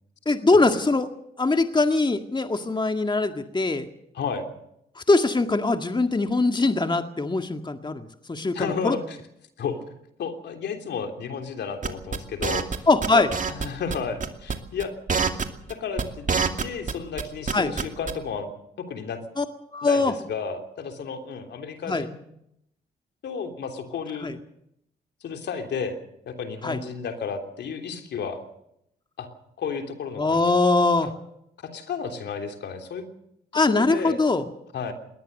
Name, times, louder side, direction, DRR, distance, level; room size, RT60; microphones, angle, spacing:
voice 1, 0.3-1.1 1.4-3.9 5.0-9.0 12.9-13.3 17.5-17.7 19.4-19.5 19.7-20.1 21.9-22.1 24.2-24.4 26.6-26.8 30.2-31.1 33.5-34.4, left 3 dB, 25° left, 6 dB, 1.9 m, -22 dB
voice 2, 4.1-4.4 8.5-9.2 9.6-9.9 10.2-14.9 15.7-16.3 16.6-18.5 18.8-19.2 19.8-22.2 23.2-24.3 25.2-26.0 26.3-28.4 29.2-29.3 29.6-30.4 31.0-31.1 31.6-33.1 33.6-34.2 34.7-34.9, left 6 dB, 70° left, 5 dB, 3.3 m, -32 dB
sound 1, 11.8-12.8 13.0-13.7 13.9-14.0 14.2-14.5 14.8-16.9 17.2-18.1, right 5 dB, 45° right, 2.6 m, -25 dB
21.0 x 19.0 x 6.7 m, 0.78 s
hypercardioid pair, 50°, 19 cm